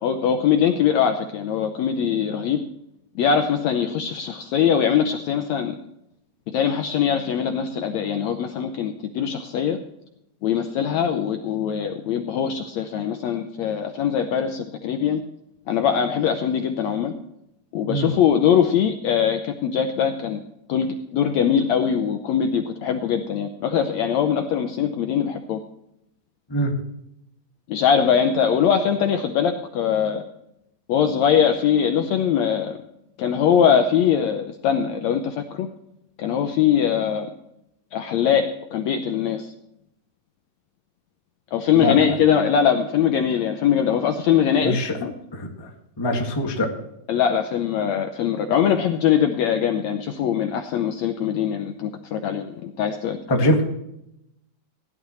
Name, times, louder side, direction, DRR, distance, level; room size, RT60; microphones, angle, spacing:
voice 1, 0.0-2.6 3.1-5.7 6.5-9.8 10.4-15.2 15.7-17.1 17.7-20.4 20.7-25.6 27.7-30.2 30.9-32.8 33.2-35.7 36.2-37.3 37.9-39.5 41.5-45.1 47.1-53.5, left 8 dB, 75° left, 6 dB, 1.7 m, -22 dB
voice 2, 41.7-42.2 44.6-45.0 45.3-45.7 46.0-46.7 53.3-53.6, left 1 dB, 15° left, 1 dB, 0.8 m, -23 dB
16.5 x 11.0 x 3.1 m, 0.80 s
omnidirectional pair, 3.9 m